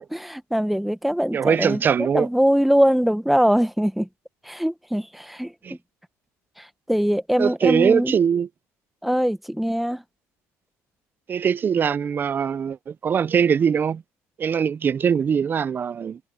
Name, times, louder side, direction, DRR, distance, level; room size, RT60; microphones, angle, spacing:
voice 1, 0.0-1.8 2.1-4.1 4.4-5.8 6.6-8.1 9.0-10.0, equal, ahead, 1.1 m, -22 dB
voice 2, 1.3-2.3 5.6-5.8 7.4-8.5 11.3-14.0 14.4-16.2, right 7 dB, 35° right, 0.4 m, -22 dB
cardioid pair, 110°, 6 cm